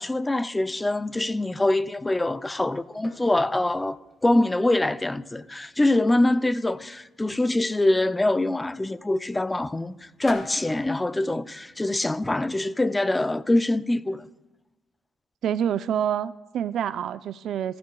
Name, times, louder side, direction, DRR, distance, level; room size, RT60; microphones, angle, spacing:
voice 1, 0.0-14.2, left 2 dB, 15° left, 0.4 m, -24 dB
sound 1, 1.7-12.3, left 2 dB, 30° left, 2.2 m, -48 dB
voice 2, 15.4-17.8, right 9 dB, 70° right, 0.3 m, -27 dB
16.0 x 15.0 x 2.3 m
cardioid pair, 90°, 0 cm